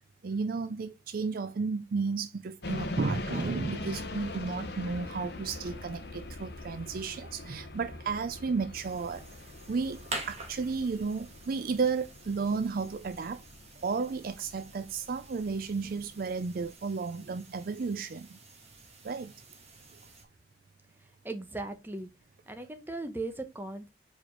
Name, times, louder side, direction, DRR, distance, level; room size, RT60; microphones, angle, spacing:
voice 1, 0.2-9.3 9.7-13.4 13.8-18.4 19.0-19.3, right 4 dB, 50° right, 0.4 m, -33 dB
sound 1, 2.6-16.7, left 2 dB, 65° left, 1.0 m, -42 dB
sound 2, 8.8-20.2, right 2 dB, 35° right, 1.6 m, -47 dB
voice 2, 21.2-22.1 22.5-23.9, right 2 dB, 10° right, 1.0 m, -38 dB
5.0 x 4.4 x 4.5 m
head